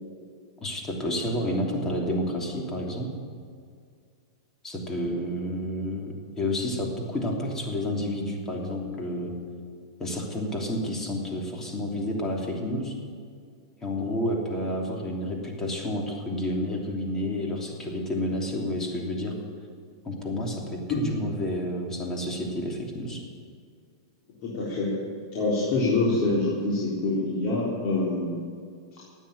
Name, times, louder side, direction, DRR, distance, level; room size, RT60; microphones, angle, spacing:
voice 1, 0.6-3.1 4.6-9.3 10.0-12.9 13.8-19.3 20.0-23.2, left 1 dB, 20° left, 0 dB, 3.1 m, -30 dB
voice 2, 24.4-25.0 25.3-28.5, left 2 dB, 45° left, -5 dB, 3.7 m, -25 dB
13.0 x 9.2 x 9.5 m, 2.1 s
hypercardioid pair, 115°, 2 cm